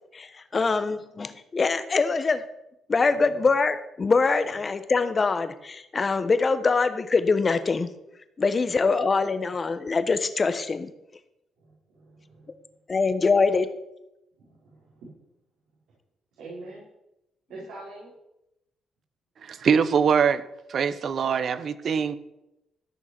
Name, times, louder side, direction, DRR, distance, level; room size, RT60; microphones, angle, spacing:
voice 1, 0.1-2.4 2.9-7.9 8.4-10.9 12.9-13.7, left 4 dB, 35° left, 1.0 m, -24 dB
voice 2, 11.6-12.5 14.4-15.1 16.4-16.8 17.5-18.1 21.5-21.6, right 2 dB, 85° right, 4.3 m, -44 dB
voice 3, 19.4-22.2, right 6 dB, 55° right, 0.8 m, -23 dB
13.5 x 6.2 x 6.0 m
cardioid pair, 90°, 0 cm